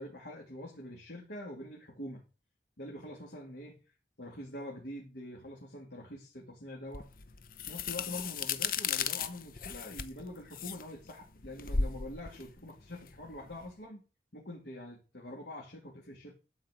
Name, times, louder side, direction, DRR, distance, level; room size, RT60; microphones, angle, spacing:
voice 1, 0.0-2.2 2.8-3.8 4.2-7.1 7.6-14.0 14.3-16.3, left 1 dB, 65° left, -1 dB, 2.6 m, -45 dB
sound 1, 6.9-13.7, left 6 dB, 50° left, 0.7 m, -36 dB
12.0 x 4.8 x 7.6 m, 0.33 s
head